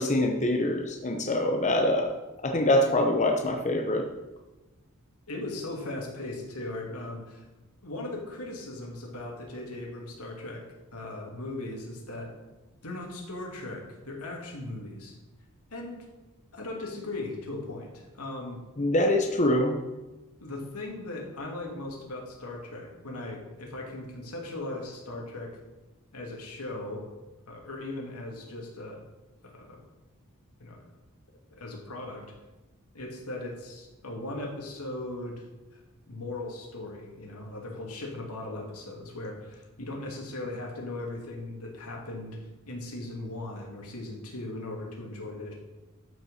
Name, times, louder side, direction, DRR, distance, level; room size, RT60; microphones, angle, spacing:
voice 1, 0.0-2.1 2.4-4.0 18.8-19.8, left 1 dB, 35° left, 3 dB, 0.8 m, -24 dB
voice 2, 5.3-7.5 7.8-10.6 10.9-12.3 12.8-15.1 15.7-16.0 16.5-18.6 20.4-25.5 26.1-27.1 27.5-29.0 29.4-29.8 30.6-30.8 31.5-32.2 32.9-35.4 35.7-35.8 36.1-42.4 42.7-45.5, left 2 dB, 80° left, -1 dB, 2.7 m, -38 dB
12.5 x 5.7 x 5.7 m, 1.1 s
head